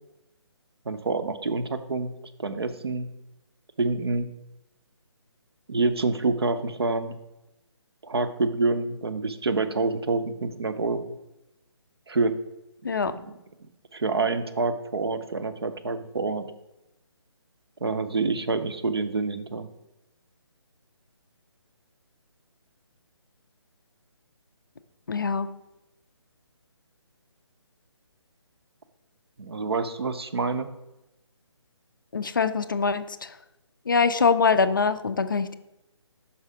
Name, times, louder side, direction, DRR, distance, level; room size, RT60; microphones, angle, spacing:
voice 1, 0.9-2.1 2.4-3.1 3.8-4.3 5.7-7.2 8.0-11.0 12.1-12.3 13.0-13.4 13.9-16.5 17.8-19.7 29.4-30.7, right 3 dB, 60° right, 10 dB, 0.6 m, -27 dB
voice 2, 25.1-25.5 32.1-33.4 33.9-35.6, left 5 dB, 45° left, 12 dB, 0.4 m, -23 dB
5.6 x 4.7 x 4.8 m, 0.94 s
figure-of-eight pair, 145°, 15 cm